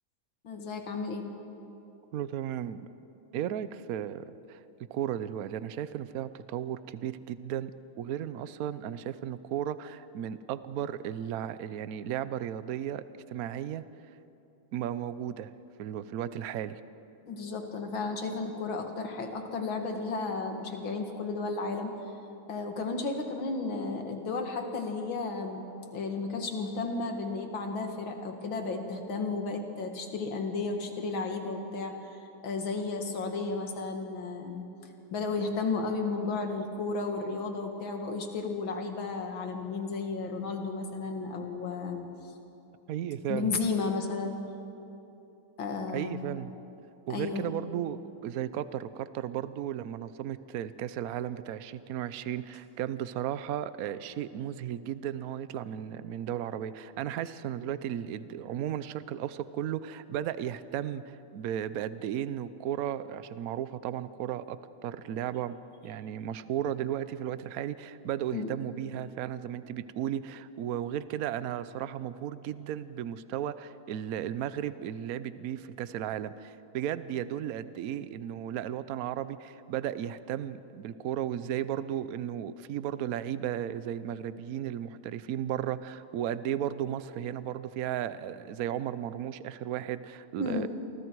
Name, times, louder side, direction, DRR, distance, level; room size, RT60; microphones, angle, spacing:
voice 1, 0.4-1.3 17.3-22.0 22.5-25.7 25.9-32.0 32.4-34.6 35.1-42.1 43.3-44.4 45.6-46.3 47.1-47.5 68.3-68.5 69.1-69.2 90.4-90.7, left 3 dB, 65° left, 4 dB, 2.6 m, -33 dB
voice 2, 2.1-2.9 3.3-4.6 4.9-7.7 8.0-13.8 14.7-15.5 15.8-16.8 42.9-43.5 45.9-46.5 47.1-65.5 65.8-90.7, right 10 dB, 75° right, 14 dB, 0.8 m, -35 dB
29.5 x 24.5 x 4.7 m, 2.9 s
omnidirectional pair, 2.3 m